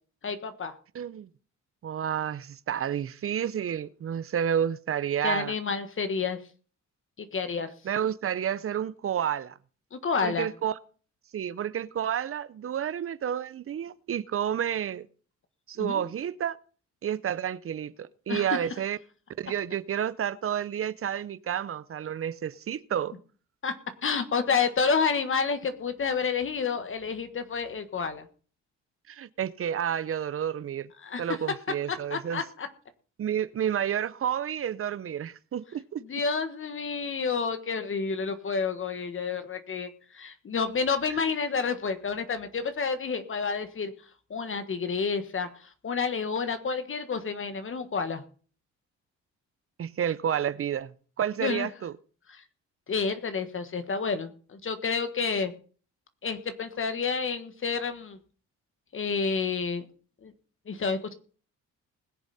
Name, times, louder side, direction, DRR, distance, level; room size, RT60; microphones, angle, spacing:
voice 1, 0.2-0.7 5.2-6.4 7.2-7.7 9.9-10.5 15.8-16.1 18.3-18.6 23.6-23.7 24.0-28.3 31.0-31.2 31.9-32.7 36.0-43.9 44.3-48.2 51.4-51.7 52.3-52.4 52.9-55.5 56.2-58.2 58.9-59.8 60.2-60.3 60.7-61.1, left 5 dB, 45° left, 1.5 m, -29 dB
voice 2, 0.9-1.3 1.8-5.5 7.8-9.6 10.2-10.8 11.3-15.1 15.7-16.6 17.0-19.0 19.4-23.1 29.1-30.9 31.2-32.4 33.2-36.0 41.1-41.2 49.8-51.9, right 9 dB, 45° right, 0.7 m, -30 dB
20.5 x 7.1 x 4.2 m
cardioid pair, 90°, 30 cm